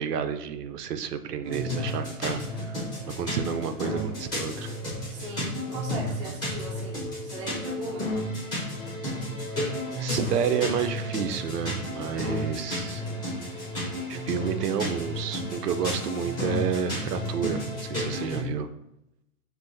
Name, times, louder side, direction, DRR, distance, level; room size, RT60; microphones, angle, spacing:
voice 1, 0.0-4.7 10.0-13.0 14.1-18.7, right 7 dB, 85° right, 9 dB, 0.6 m, -30 dB
sound 1, 1.4-18.4, left 1 dB, 10° left, 0.8 m, -32 dB
voice 2, 5.1-8.1, right 2 dB, 20° right, -3 dB, 0.4 m, -39 dB
5.6 x 2.5 x 2.6 m, 0.85 s
hypercardioid pair, 150°, 46 cm